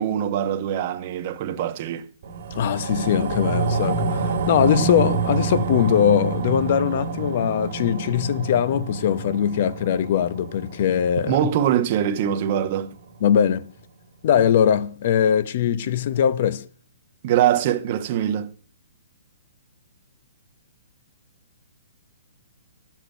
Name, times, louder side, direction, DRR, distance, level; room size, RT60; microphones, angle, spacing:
voice 1, 0.0-2.1 11.3-12.9 17.2-18.5, right 10 dB, 40° right, 1.2 m, -23 dB
sound 1, 2.2-12.8 13.2-13.3, right 4 dB, 55° right, 2.2 m, -28 dB
voice 2, 2.5-11.5 13.2-13.7 14.2-16.7, left 9 dB, 45° left, 1.1 m, -21 dB
11.5 x 7.5 x 9.1 m
hypercardioid pair, 160°, 0 cm